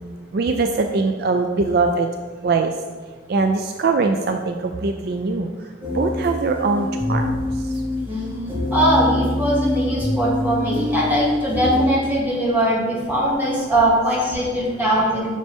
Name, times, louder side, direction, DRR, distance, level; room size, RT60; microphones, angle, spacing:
voice 1, 0.3-2.1 2.4-2.7 3.3-5.5 5.9-7.3, right 4 dB, 55° right, 5 dB, 0.4 m, -21 dB
sound 1, 5.8-11.9, left 1 dB, 25° right, 1.8 m, -24 dB
voice 2, 8.7-15.4, right 1 dB, 10° right, -6 dB, 2.2 m, -20 dB
9.3 x 6.3 x 3.6 m, 1.4 s
head